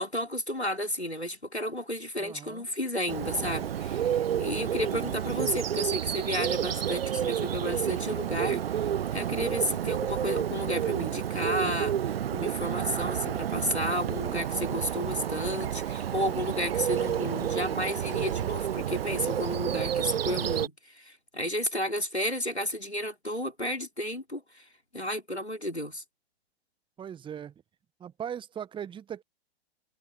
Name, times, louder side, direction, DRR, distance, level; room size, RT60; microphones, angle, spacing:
voice 1, 0.0-24.6 24.9-26.0, equal, 90° left, 3.8 m, -32 dB
voice 2, 2.2-2.6 4.9-5.5 27.0-27.5 28.0-29.2, right 8 dB, 15° right, 1.6 m, -40 dB
Bird, 3.1-20.7, right 9 dB, 65° right, 0.6 m, -30 dB
figure-of-eight pair, 105°, 32 cm